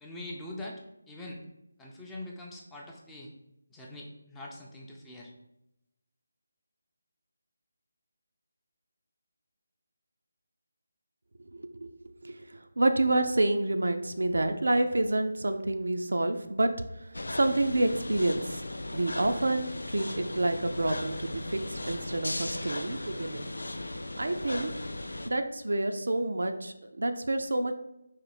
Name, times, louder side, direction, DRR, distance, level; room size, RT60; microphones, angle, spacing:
voice 1, 0.0-1.4 1.8-3.3 3.7-5.3, left 1 dB, 5° left, -2 dB, 0.5 m, -43 dB
voice 2, 11.5-11.9 12.2-18.6 18.9-23.5 24.2-24.7 25.3-27.7, right 2 dB, 70° right, 7 dB, 0.4 m, -28 dB
sound 1, 17.1-25.3, left 1 dB, 75° left, 0.3 m, -37 dB
4.3 x 2.7 x 4.1 m, 0.87 s
figure-of-eight pair, 155°, 0 cm